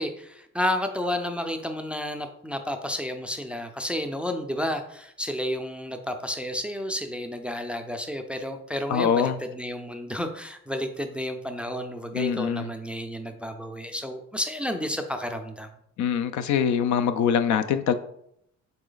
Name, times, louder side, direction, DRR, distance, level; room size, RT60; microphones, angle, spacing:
voice 1, 0.0-15.7, left 1 dB, 5° right, 6 dB, 0.4 m, -31 dB
voice 2, 8.9-9.4 12.1-12.7 16.0-17.9, left 7 dB, 70° left, 11 dB, 0.5 m, -23 dB
4.0 x 3.1 x 3.8 m, 0.73 s
cardioid pair, 90°, 30 cm